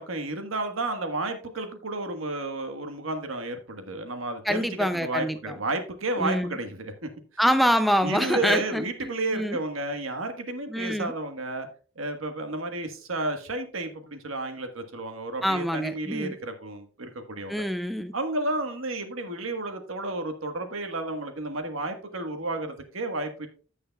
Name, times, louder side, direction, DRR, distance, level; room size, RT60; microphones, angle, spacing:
voice 1, 0.0-7.1 8.0-11.7 11.9-17.6 18.1-23.5, right 2 dB, 80° right, 1.4 m, -32 dB
voice 2, 4.4-5.6 6.2-6.6 7.4-9.6 10.7-11.1 15.4-16.4 17.5-18.1, equal, ahead, 0.4 m, -26 dB
15.0 x 6.5 x 2.3 m
head